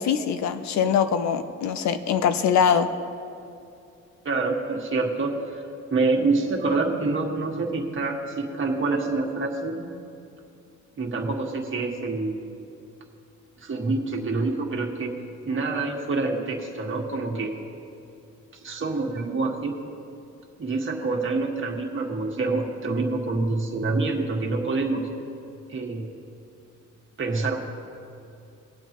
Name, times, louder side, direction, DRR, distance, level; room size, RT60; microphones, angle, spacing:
voice 1, 0.0-2.9, left 7 dB, 65° left, 9 dB, 0.6 m, -22 dB
voice 2, 4.3-5.6 5.9-9.8 11.0-12.5 13.6-15.1 15.4-17.5 18.6-19.7 20.6-25.1 25.7-26.0 27.2-27.6, right 3 dB, 40° right, 0 dB, 1.8 m, -26 dB
21.0 x 8.0 x 3.0 m, 2.5 s
cardioid pair, 90°, 30 cm